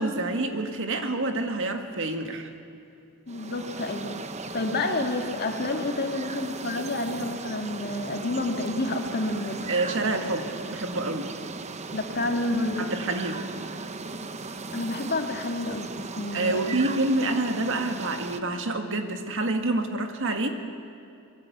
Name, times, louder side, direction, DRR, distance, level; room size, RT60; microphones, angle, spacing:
voice 1, 0.0-2.5 9.7-11.3 12.8-13.4 16.3-20.5, right 2 dB, 60° right, 6 dB, 2.0 m, -27 dB
voice 2, 3.3-4.2 4.5-9.7 11.9-12.9 14.7-16.6, left 2 dB, 45° left, 4 dB, 2.2 m, -29 dB
sound 1, 3.3-18.4, right 3 dB, 30° right, 0.9 m, -37 dB
25.0 x 22.0 x 8.1 m, 2.6 s
head